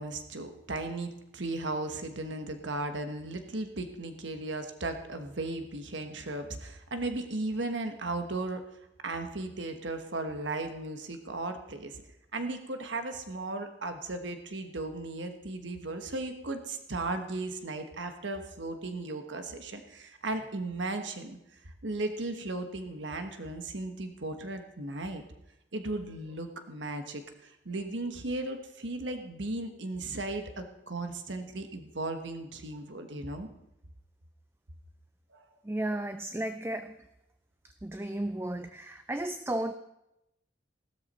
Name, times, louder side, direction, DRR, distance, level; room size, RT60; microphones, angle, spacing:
voice 1, 0.0-8.6 9.0-12.0 12.3-21.4 21.6-25.2 25.7-33.5 35.3-35.4, right 2 dB, 75° right, 7 dB, 1.2 m, -36 dB
voice 2, 35.6-37.0 37.8-39.7, right 1 dB, 10° right, 9 dB, 0.4 m, -34 dB
16.5 x 13.0 x 4.2 m, 0.87 s
head